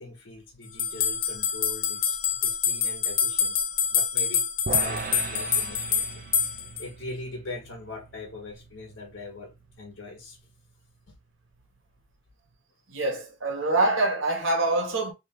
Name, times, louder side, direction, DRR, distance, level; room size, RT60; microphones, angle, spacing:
voice 1, 0.0-3.6 3.9-6.2 6.8-10.4 11.1-11.2, left 2 dB, 70° left, 1.2 m, -42 dB
sound 1, 0.8-6.8, left 7 dB, 45° left, 0.6 m, -26 dB
sound 2, 4.7-11.0, right 4 dB, 45° right, 0.4 m, -39 dB
voice 2, 12.9-15.1, right 2 dB, 85° right, 1.3 m, -25 dB
3.4 x 3.1 x 2.8 m
head